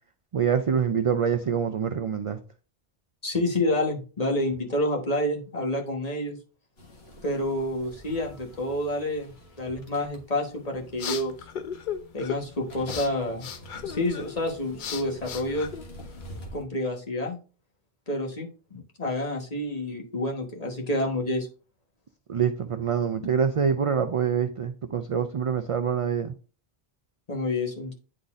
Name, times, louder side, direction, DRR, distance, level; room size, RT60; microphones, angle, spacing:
voice 1, 0.3-2.4 22.3-26.3, right 7 dB, 55° right, 7 dB, 0.4 m, -25 dB
voice 2, 3.2-6.4 7.2-9.3 9.6-11.3 12.1-13.5 13.8-15.7 16.5-17.4 18.1-18.5 19.0-21.5 27.3-27.9, left 1 dB, 40° left, 1 dB, 1.3 m, -28 dB
sound 1, 6.8-16.6, equal, 75° left, 1.6 m, -47 dB
sound 2, 10.5-16.4, left 8 dB, 60° left, 0.7 m, -38 dB
9.9 x 4.0 x 2.4 m, 0.36 s
omnidirectional pair, 1.1 m